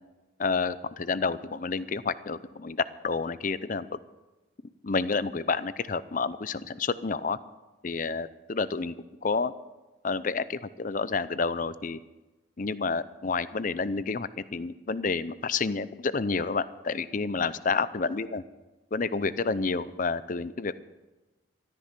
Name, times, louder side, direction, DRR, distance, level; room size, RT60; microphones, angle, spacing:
voice 1, 0.4-4.0 4.8-7.4 7.8-8.9 9.2-9.5 10.0-12.0 12.6-18.4 18.9-20.8, left 4 dB, 45° left, 15 dB, 0.5 m, -29 dB
13.5 x 13.5 x 5.9 m, 1.1 s
head